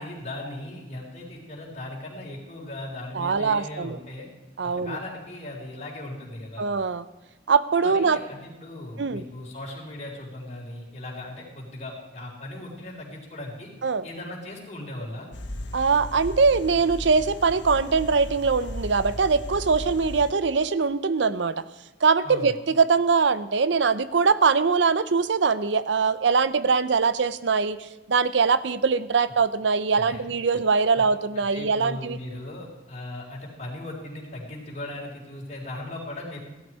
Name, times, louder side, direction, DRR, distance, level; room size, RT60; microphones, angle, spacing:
voice 1, 0.0-4.3 4.6-6.7 7.8-13.7 14.0-15.3 22.2-22.5 29.9-30.3 30.9-31.0 31.5-36.4, left 1 dB, 40° left, -3 dB, 4.2 m, -38 dB
voice 2, 3.1-4.0 4.6-5.0 6.6-7.0 7.5-8.2 9.0-9.2 13.8-14.0 15.7-21.6 22.0-32.2, right 5 dB, 85° right, 15 dB, 0.6 m, -22 dB
sound 1, 15.3-20.3, left 1 dB, 85° left, 1.3 m, -36 dB
16.0 x 12.5 x 4.8 m, 1.1 s
head